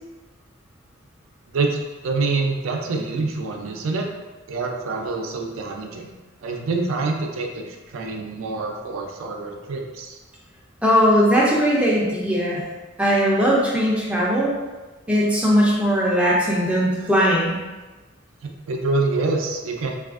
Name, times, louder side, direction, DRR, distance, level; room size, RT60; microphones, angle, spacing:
voice 1, 1.5-4.1 4.5-6.1 6.4-10.2 18.4-20.0, right 3 dB, 80° right, 2 dB, 0.4 m, -26 dB
voice 2, 10.8-12.6 13.0-14.5 15.1-17.6, equal, 5° right, -5 dB, 0.4 m, -19 dB
3.3 x 2.3 x 2.4 m, 1.2 s
head